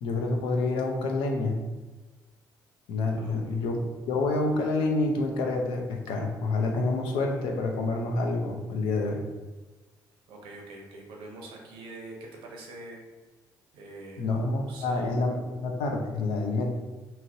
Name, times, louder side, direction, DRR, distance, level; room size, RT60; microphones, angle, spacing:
voice 1, 0.0-1.6 2.9-9.2 14.2-16.6, left 2 dB, 85° left, 2 dB, 0.5 m, -28 dB
voice 2, 3.1-3.6 10.3-13.0 13.7-14.3 14.7-15.1, right 2 dB, 85° right, -1 dB, 0.7 m, -44 dB
3.0 x 2.8 x 2.6 m, 1.2 s
supercardioid pair, 65°, 8 cm